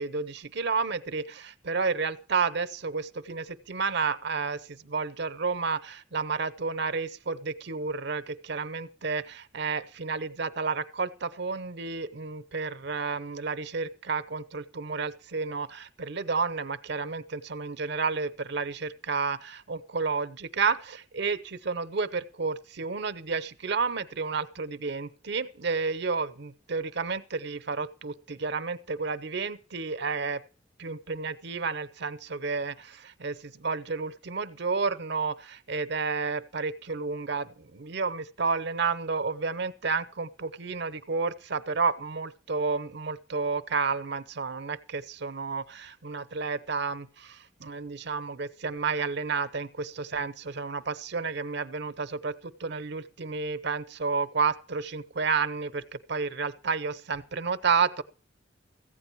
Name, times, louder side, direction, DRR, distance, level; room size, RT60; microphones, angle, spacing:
voice 1, 0.0-30.4 30.8-58.0, right 4 dB, 65° right, 14 dB, 0.8 m, -31 dB
15.0 x 9.0 x 4.5 m, 0.38 s
head